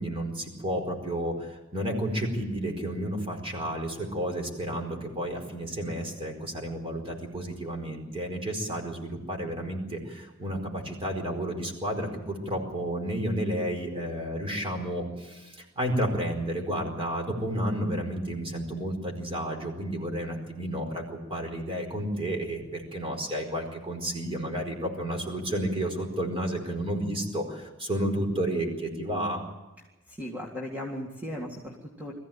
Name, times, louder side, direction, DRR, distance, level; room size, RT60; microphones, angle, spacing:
voice 1, 0.0-29.4, right 1 dB, 25° right, 2 dB, 4.7 m, -31 dB
voice 2, 30.1-32.1, left 1 dB, 10° right, -1 dB, 2.1 m, -37 dB
22.5 x 15.0 x 8.9 m, 1.1 s
head